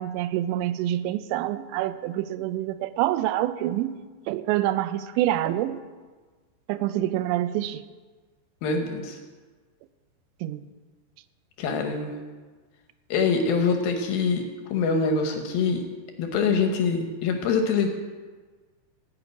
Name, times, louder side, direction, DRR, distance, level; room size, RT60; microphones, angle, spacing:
voice 1, 0.0-5.8 6.7-7.8 10.4-10.6, right 13 dB, 85° right, 13 dB, 2.8 m, -27 dB
voice 2, 8.6-9.2 11.6-12.2 13.1-14.4 14.7-15.8 16.2-17.9, left 5 dB, 75° left, 4 dB, 2.3 m, -24 dB
16.0 x 5.9 x 9.1 m, 1.4 s
omnidirectional pair, 5.2 m